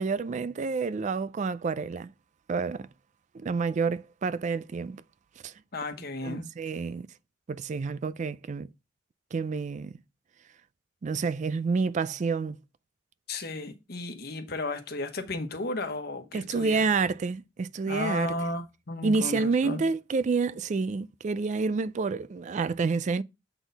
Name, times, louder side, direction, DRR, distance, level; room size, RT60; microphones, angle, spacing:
voice 1, 0.0-2.1 2.5-2.9 3.3-5.0 5.4-5.5 6.2-7.1 7.5-8.7 9.3-10.0 11.0-12.6 16.3-18.3 19.0-23.2, right 4 dB, 40° right, 0.3 m, -28 dB
voice 2, 5.7-6.4 13.3-16.8 17.9-19.8, left 2 dB, 60° left, 1.1 m, -34 dB
7.9 x 4.1 x 4.0 m
head